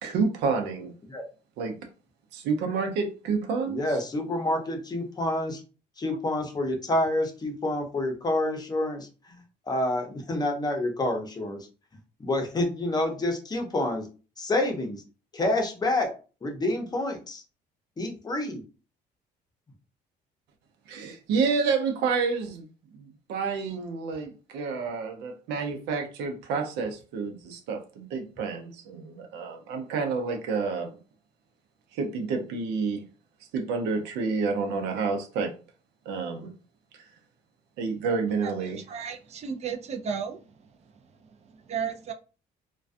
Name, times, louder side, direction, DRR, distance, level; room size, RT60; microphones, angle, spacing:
voice 1, 0.0-0.9 1.6-1.7 2.3-3.8 20.9-22.7 22.9-30.9 31.9-33.0 33.5-35.5 36.1-36.5 37.8-38.8, right 5 dB, 85° right, 0.6 m, -29 dB
voice 2, 3.7-5.6 6.0-9.1 9.7-11.7 12.2-14.1 14.4-15.0 15.3-16.1 16.4-17.4 18.0-18.6, left 1 dB, 25° left, 0.6 m, -28 dB
voice 3, 38.9-40.4 41.7-42.1, right 6 dB, 40° right, 0.4 m, -33 dB
2.3 x 2.2 x 2.5 m
cardioid pair, 110°, 17 cm